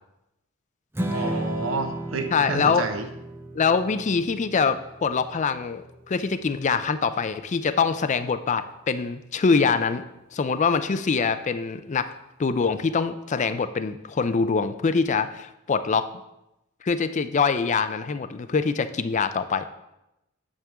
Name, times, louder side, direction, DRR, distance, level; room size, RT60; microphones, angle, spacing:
Strum, 0.9-7.2, right 1 dB, 10° right, 0.7 m, -35 dB
voice 1, 1.1-3.1, right 3 dB, 70° right, 6 dB, 0.9 m, -29 dB
voice 2, 2.3-2.8 3.5-10.0 10.3-12.1 12.4-16.1 16.8-19.6, left 5 dB, 35° left, 11 dB, 0.4 m, -24 dB
8.8 x 3.6 x 6.8 m, 0.90 s
head